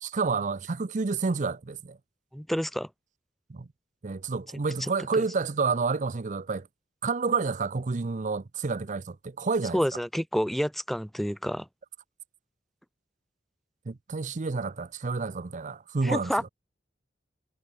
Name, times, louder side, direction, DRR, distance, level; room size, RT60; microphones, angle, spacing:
voice 1, 0.0-2.0 3.5-3.7 4.0-6.7 7.0-9.8 13.9-16.3, right 4 dB, 45° right, 0.6 m, -29 dB
voice 2, 2.3-2.9 4.8-5.2 9.7-11.7 16.0-16.4, equal, ahead, 0.8 m, -29 dB
head